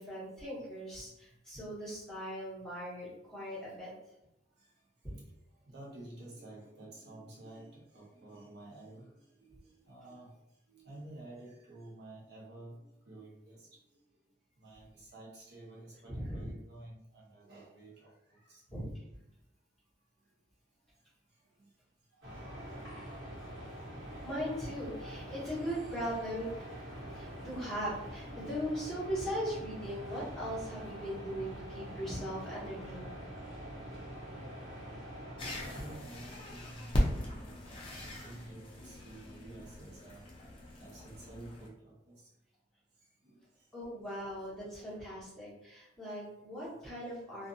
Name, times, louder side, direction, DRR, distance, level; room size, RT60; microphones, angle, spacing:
voice 1, 0.0-3.9 5.0-5.1 16.1-16.5 18.7-18.9 24.2-26.5 27.1-33.1 43.7-47.5, equal, 5° left, -10 dB, 1.1 m, -39 dB
voice 2, 5.7-10.3 10.7-13.6 14.6-18.6 28.2-28.5 31.3-31.6 35.6-40.2 40.8-42.2 43.2-43.4 44.7-45.2, right 1 dB, 60° right, -4 dB, 0.7 m, -51 dB
sound 1, 22.2-36.0, equal, 85° right, 1.1 m, -45 dB
sound 2, 35.4-41.7, equal, 25° left, 0.4 m, -38 dB
2.4 x 2.4 x 2.6 m, 0.83 s
head